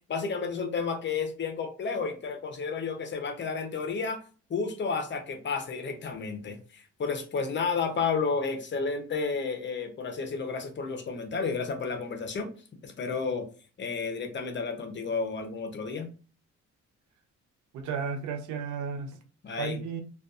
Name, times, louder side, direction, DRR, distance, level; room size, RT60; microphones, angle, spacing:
voice 1, 0.1-4.2 4.5-12.5 12.8-13.5 13.8-16.1 19.4-19.8, left 5 dB, 40° left, 0.7 m, -31 dB
voice 2, 17.7-19.2 19.6-20.0, right 6 dB, 75° right, 0.6 m, -33 dB
2.5 x 2.3 x 2.4 m
cardioid pair, 90°, 30 cm